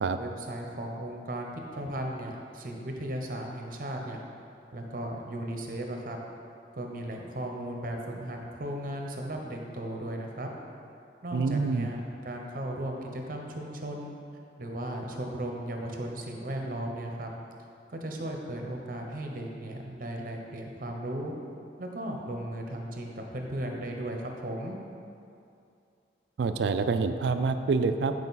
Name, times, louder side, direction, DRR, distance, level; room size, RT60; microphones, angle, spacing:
voice 1, 0.2-4.2 4.7-6.2 6.7-10.5 11.2-14.1 14.6-17.3 17.9-21.3 21.8-24.8, right 1 dB, 50° right, 1 dB, 0.8 m, -36 dB
voice 2, 11.3-11.9 26.4-28.1, right 4 dB, 75° right, 9 dB, 0.3 m, -26 dB
9.2 x 4.8 x 4.1 m, 2.5 s
head